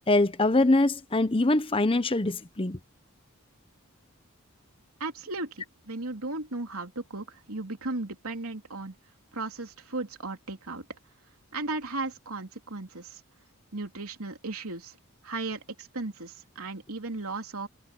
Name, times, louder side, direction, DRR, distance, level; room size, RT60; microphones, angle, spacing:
voice 1, 0.1-2.8, left 2 dB, 25° left, 0.9 m, -23 dB
voice 2, 5.0-8.9 9.3-10.8 11.5-13.2 13.7-14.9 15.2-17.7, right 2 dB, 85° right, 3.2 m, -36 dB
head